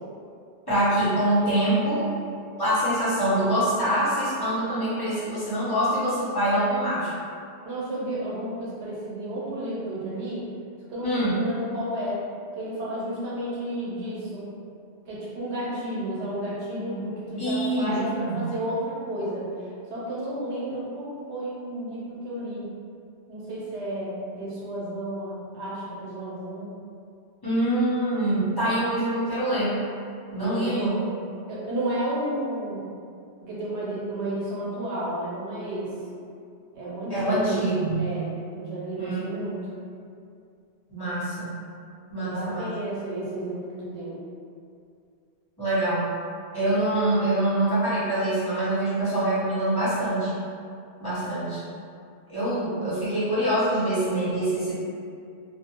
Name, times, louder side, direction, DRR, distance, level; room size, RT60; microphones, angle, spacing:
voice 1, 0.7-2.1 2.6-7.1 11.0-11.4 17.4-18.5 27.4-29.8 30.3-30.9 37.1-38.2 39.0-39.2 40.9-41.5 42.1-42.7 45.6-46.1 46.5-50.3 51.0-51.6 52.3-54.7, right 1 dB, 25° left, -12 dB, 0.7 m, -25 dB
voice 2, 7.6-10.5 10.9-12.2 12.6-14.5 15.1-22.6 23.3-26.7 30.4-31.1 31.5-32.9 33.4-35.9 36.7-37.7 37.9-38.3 38.5-39.7 42.2-44.2, right 1 dB, 85° right, -7 dB, 1.0 m, -32 dB
2.3 x 2.1 x 2.8 m, 2.4 s
omnidirectional pair, 1.1 m